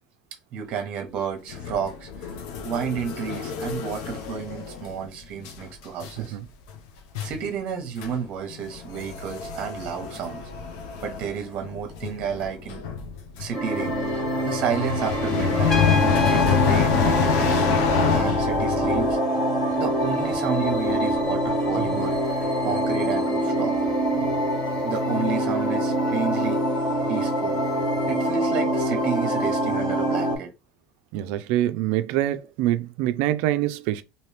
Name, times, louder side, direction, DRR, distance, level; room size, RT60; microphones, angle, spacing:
voice 1, 0.5-2.3 2.6-6.4 7.2-10.4 11.0-12.8 13.4-13.9 14.4-15.8 16.3-17.7 18.1-19.2 19.8-23.8 24.8-26.6 27.1-27.6 28.1-30.5, right 7 dB, 40° right, 0.9 m, -31 dB
sound 1, 1.5-5.1 5.4-5.7 6.0-6.3 6.7-6.8 7.1-7.5 8.0-8.2 8.4-19.1, left 7 dB, 70° left, 0.5 m, -27 dB
sound 2, 13.5-30.4, equal, 40° left, 1.5 m, -24 dB
Trumpet, 15.7-18.3, left 5 dB, 10° left, 0.3 m, -31 dB
voice 2, 31.1-34.0, right 14 dB, 60° right, 0.4 m, -25 dB
3.0 x 2.7 x 3.3 m
cardioid pair, 175°, 3 cm